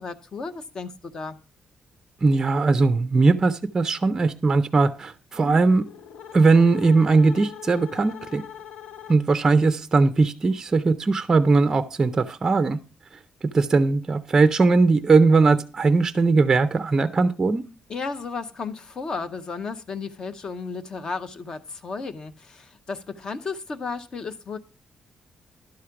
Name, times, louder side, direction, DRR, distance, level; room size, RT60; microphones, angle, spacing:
voice 1, 0.0-1.4 17.9-24.6, left 4 dB, 35° left, 10 dB, 0.7 m, -33 dB
voice 2, 2.2-5.8 6.3-8.4 9.1-12.8 13.4-17.6, right 3 dB, 25° right, 11 dB, 0.4 m, -19 dB
sound 1, 5.3-9.5, left 8 dB, 75° left, 0.8 m, -42 dB
11.5 x 4.9 x 5.7 m, 0.33 s
wide cardioid pair, 175°, 2 cm